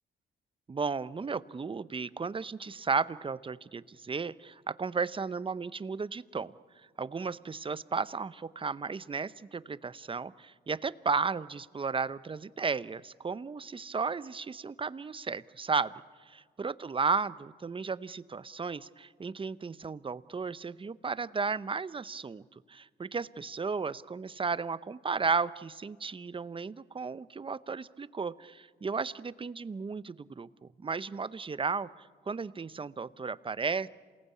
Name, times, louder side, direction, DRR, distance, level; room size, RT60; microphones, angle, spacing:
voice 1, 0.7-6.5 7.0-15.9 16.3-33.9, right 5 dB, 30° right, 16 dB, 0.8 m, -34 dB
28.0 x 19.0 x 8.5 m, 1.5 s
supercardioid pair, 65°, 19 cm